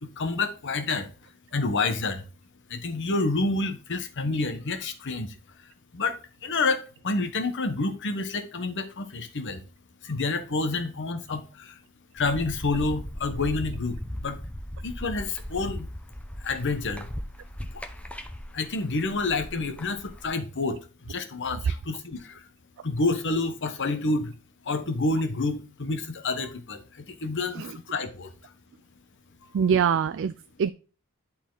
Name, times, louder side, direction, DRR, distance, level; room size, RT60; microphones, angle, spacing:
voice 1, 0.0-1.1 1.5-2.3 2.7-5.3 5.6-9.6 10.0-11.8 12.1-14.4 14.8-15.9 16.4-17.1 17.7-17.8 18.5-22.5 22.8-24.3 24.6-28.5, left 3 dB, 55° left, 1.1 m, -29 dB
sound 1, 12.2-20.3, equal, 5° left, 0.8 m, -38 dB
voice 2, 29.5-30.7, right 7 dB, 55° right, 0.3 m, -24 dB
11.0 x 4.3 x 3.9 m
head